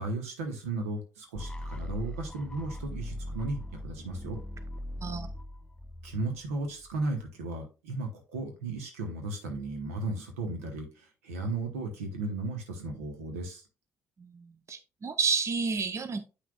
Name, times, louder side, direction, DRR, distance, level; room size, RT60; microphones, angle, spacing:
voice 1, 0.0-4.4 6.0-13.6, right 2 dB, 80° right, 5 dB, 1.1 m, -35 dB
sound 1, 1.4-7.3, left 1 dB, 10° left, 0.5 m, -40 dB
voice 2, 14.2-16.2, right 5 dB, 40° right, 10 dB, 0.7 m, -31 dB
8.2 x 5.8 x 2.3 m, 0.30 s
figure-of-eight pair, 40°, 8 cm